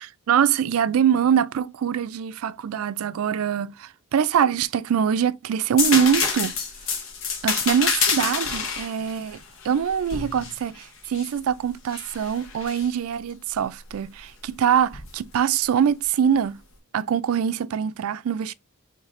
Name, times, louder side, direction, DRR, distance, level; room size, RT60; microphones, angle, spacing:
voice 1, 0.3-6.6 7.4-16.6 16.9-18.5, right 8 dB, 90° right, 0.4 m, -23 dB
sound 1, 5.8-11.4 11.9-12.9 14.9-15.1, left 5 dB, 65° left, 1.1 m, -27 dB
4.9 x 3.2 x 3.0 m
head